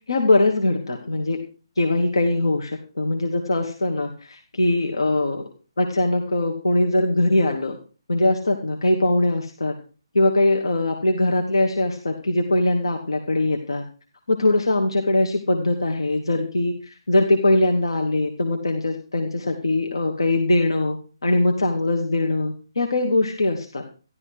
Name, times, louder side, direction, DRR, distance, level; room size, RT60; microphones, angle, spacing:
voice 1, 0.1-1.4 1.8-5.5 5.8-7.8 8.1-9.7 10.1-13.8 14.3-21.0 21.2-23.8, left 2 dB, 80° left, 3 dB, 2.3 m, -21 dB
13.5 x 12.5 x 4.9 m, 0.37 s
figure-of-eight pair, 145°, 3 cm